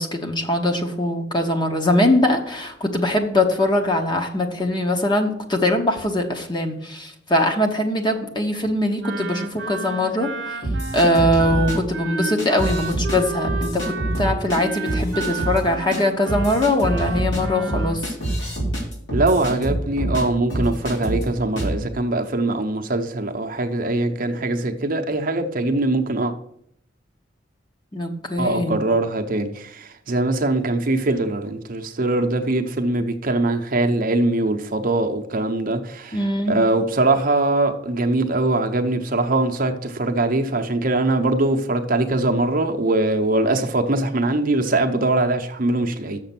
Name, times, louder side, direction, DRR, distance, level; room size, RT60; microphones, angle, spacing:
voice 1, 0.0-10.6 10.9-18.1 27.9-28.8 36.1-36.5, left 1 dB, 25° left, 1.0 m, -22 dB
Wind instrument woodwind instrument, 9.0-18.0, right 4 dB, 65° right, 1.1 m, -32 dB
sound 1, 10.6-11.7 12.4-13.2 13.4-14.6 14.8-15.6 15.9-16.0 16.3-20.2 20.5-21.2 21.6-21.8, right 1 dB, 65° left, 3.1 m, -25 dB
voice 2, 19.1-26.3 28.4-36.2 36.5-46.2, right 2 dB, 45° right, 0.7 m, -22 dB
6.7 x 6.4 x 5.9 m
head